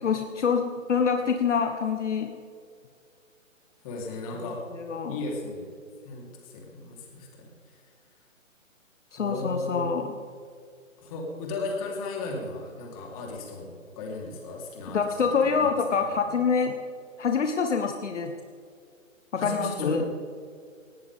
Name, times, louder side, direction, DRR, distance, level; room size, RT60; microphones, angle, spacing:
voice 1, 0.0-2.3 4.8-5.2 9.1-10.1 14.9-16.8 17.2-18.3 19.3-20.0, left 6 dB, 60° left, 5 dB, 1.4 m, -26 dB
voice 2, 3.8-4.6 5.1-5.7 6.0-7.5 9.2-9.9 11.0-15.7 16.0-16.1 19.4-20.1, left 3 dB, 25° left, -1 dB, 3.8 m, -35 dB
18.5 x 18.0 x 3.7 m, 2.2 s
hypercardioid pair, 150°, 39 cm